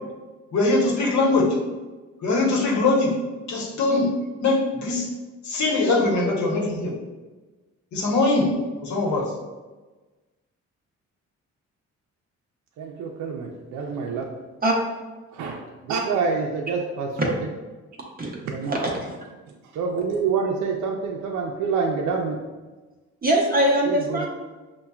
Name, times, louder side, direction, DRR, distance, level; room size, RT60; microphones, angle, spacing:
voice 1, 0.5-1.5 2.2-3.1 3.5-4.1 4.4-5.1 5.4-6.9 7.9-8.5 8.8-9.3, left 2 dB, 70° left, -1 dB, 1.0 m, -21 dB
voice 2, 12.8-14.2 15.3-17.5 18.4-19.0 19.7-22.4 23.8-24.3, right 5 dB, 75° right, 1 dB, 0.5 m, -27 dB
voice 3, 18.7-19.1 23.2-24.3, right 1 dB, 30° right, -2 dB, 0.7 m, -22 dB
5.4 x 2.2 x 2.3 m, 1.2 s
cardioid pair, 90°, 30 cm